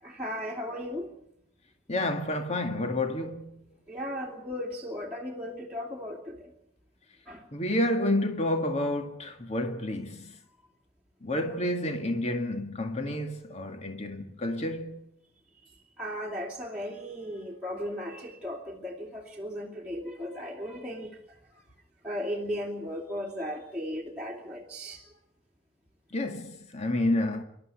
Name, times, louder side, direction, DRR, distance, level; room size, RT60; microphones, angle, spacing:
voice 1, 0.0-1.1 3.9-6.5 7.3-7.4 11.4-11.6 16.0-21.2 22.0-25.0, equal, 5° right, 2.8 m, -36 dB
voice 2, 1.9-3.5 7.5-10.3 11.2-15.0 26.1-27.4, left 1 dB, 35° left, 2.1 m, -29 dB
26.5 x 12.5 x 9.8 m
head